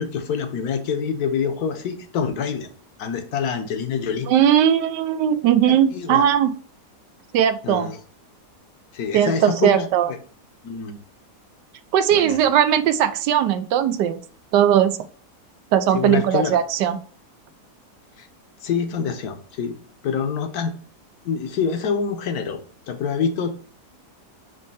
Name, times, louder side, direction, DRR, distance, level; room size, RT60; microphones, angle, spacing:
voice 1, 0.0-2.7 3.0-4.3 5.7-6.2 7.6-8.0 8.9-10.2 10.6-11.0 12.1-12.4 15.9-16.6 18.2-18.3 18.6-19.8 20.0-20.7 21.2-22.6 22.9-23.5, left 6 dB, 70° left, 7 dB, 1.3 m, -26 dB
voice 2, 4.3-6.5 7.3-7.9 9.1-10.1 11.9-14.2 14.5-15.0 15.7-17.0, right 9 dB, 90° right, 11 dB, 1.2 m, -18 dB
5.3 x 3.2 x 5.4 m, 0.43 s
omnidirectional pair, 1.8 m